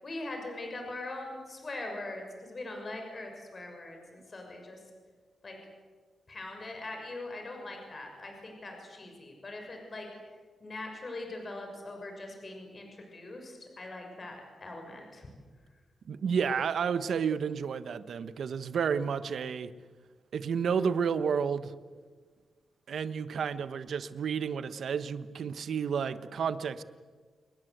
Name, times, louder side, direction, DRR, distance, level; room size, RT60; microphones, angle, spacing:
voice 1, 0.0-4.8 5.4-5.6 6.3-10.1 10.6-15.3, left 2 dB, 35° left, 3 dB, 6.7 m, -41 dB
voice 2, 16.1-19.7 20.3-21.7 22.9-26.8, right 6 dB, 75° right, 12 dB, 1.2 m, -31 dB
29.0 x 20.5 x 8.1 m, 1.5 s
wide cardioid pair, 105°, 0 cm